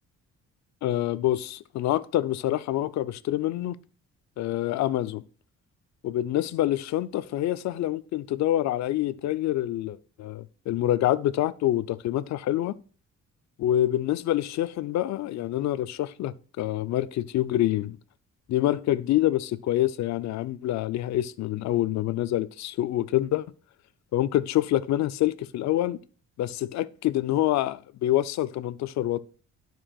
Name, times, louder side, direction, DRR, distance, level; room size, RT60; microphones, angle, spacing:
voice 1, 0.8-3.8 4.4-5.2 6.0-12.7 13.6-18.0 18.5-23.5 24.1-26.0 26.4-29.2, left 13 dB, 65° left, 0.5 m, -26 dB
11.5 x 4.6 x 2.3 m
cardioid pair, 90°, 30 cm